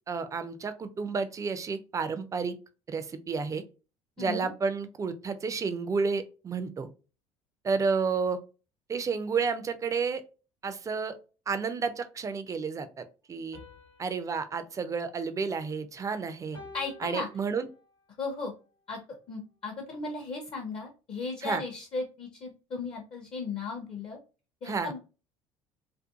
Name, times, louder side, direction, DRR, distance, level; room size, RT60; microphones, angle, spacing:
voice 1, 0.1-2.5 2.9-3.6 4.2-6.9 7.6-8.4 8.9-10.2 10.6-11.1 11.5-13.6 14.0-16.6 17.0-17.7 21.4-21.6 24.6-24.9, right 5 dB, 20° right, 11 dB, 0.4 m, -31 dB
voice 2, 4.2-4.5 16.7-17.3 18.2-18.5 18.9-19.0 19.3-24.2 24.6-25.0, left 4 dB, 35° left, 2 dB, 0.6 m, -36 dB
sound 1, 13.5-16.0 16.5-18.1, left 3 dB, 85° left, 1.0 m, -52 dB
2.5 x 2.3 x 2.3 m, 0.33 s
figure-of-eight pair, 60°, 17 cm